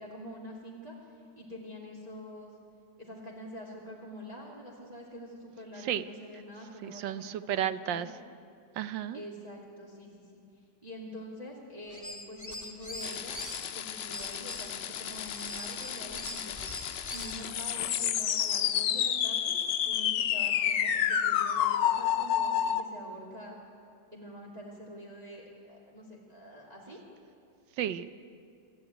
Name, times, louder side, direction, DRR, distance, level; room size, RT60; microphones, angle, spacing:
voice 1, 0.0-2.5 3.0-8.1 9.1-10.1 10.8-13.4 13.7-16.6 17.1-19.6 19.9-23.6 24.1-27.0, equal, 20° right, -3 dB, 2.6 m, -45 dB
voice 2, 6.8-8.2 8.7-9.2 27.8-28.1, right 10 dB, 80° right, 13 dB, 1.4 m, -33 dB
sound 1, 11.9-13.7 14.1-17.4, left 1 dB, 10° left, 2.2 m, -42 dB
sound 2, 13.0-22.8, left 9 dB, 75° left, 1.5 m, -30 dB
27.5 x 13.0 x 9.2 m, 2.4 s
omnidirectional pair, 2.0 m